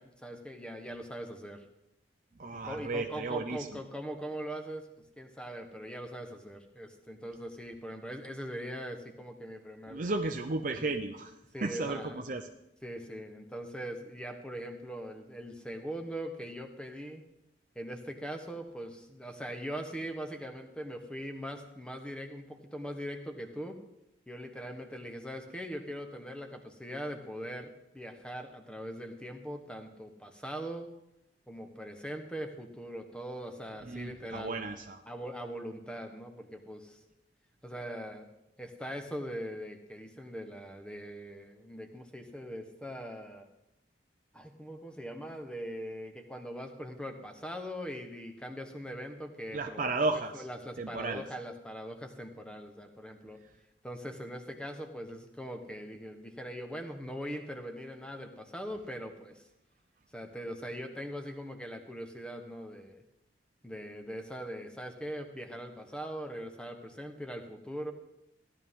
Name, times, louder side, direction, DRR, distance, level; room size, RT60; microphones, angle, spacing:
voice 1, 0.0-1.6 2.6-4.9 5.2-10.0 10.7-10.9 11.5-12.2 12.8-17.2 17.7-23.8 24.3-30.9 31.5-34.7 35.1-37.0 37.6-38.3 38.6-43.5 44.3-49.9 50.4-53.4 53.8-59.5 60.1-63.0 63.6-67.9, equal, 5° left, 5 dB, 1.1 m, -41 dB
voice 2, 2.4-3.7 9.9-11.3 11.6-12.5 33.8-35.0 49.5-50.5 50.8-51.2, right 3 dB, 45° right, 5 dB, 0.6 m, -34 dB
16.5 x 11.0 x 3.7 m, 0.87 s
head